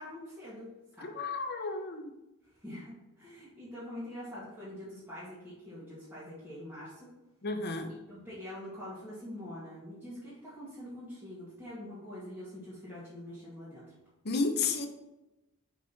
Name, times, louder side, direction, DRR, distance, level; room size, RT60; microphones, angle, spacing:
voice 1, 0.0-1.1 2.6-7.1 8.1-13.9, left 1 dB, 10° right, -10 dB, 2.0 m, -45 dB
voice 2, 1.0-2.1 7.4-7.9 14.2-14.9, left 3 dB, 50° left, 6 dB, 0.8 m, -32 dB
5.5 x 5.1 x 4.1 m, 0.98 s
head